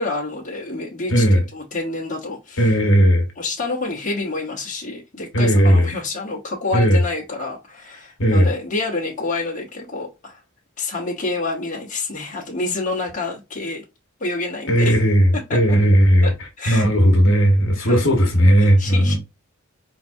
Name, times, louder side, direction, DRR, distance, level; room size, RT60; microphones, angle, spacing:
voice 1, 0.0-1.2 1.5-2.6 3.4-10.4 10.8-13.8 14.2-15.0 15.5-15.6 16.2-16.8 17.8-18.0 18.8-19.2, left 3 dB, 35° left, 1.2 m, -28 dB
voice 2, 1.1-1.4 2.6-3.2 5.3-5.9 6.7-7.0 8.2-8.5 14.7-16.3 16.7-19.2, equal, 65° left, 1.5 m, -15 dB
4.5 x 3.8 x 2.7 m
head